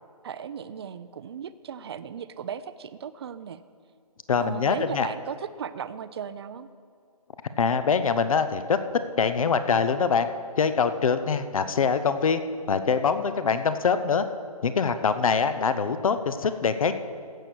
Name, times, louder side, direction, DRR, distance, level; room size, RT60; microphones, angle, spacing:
voice 1, 0.2-3.6 4.4-6.7, right 8 dB, 40° right, 14 dB, 0.5 m, -36 dB
voice 2, 4.3-5.1 7.6-8.8 9.2-10.3 10.6-12.4 12.7-14.2 14.6-16.9, left 6 dB, 60° left, 11 dB, 0.9 m, -24 dB
15.5 x 6.8 x 6.2 m, 2.2 s
figure-of-eight pair, 150°, 20 cm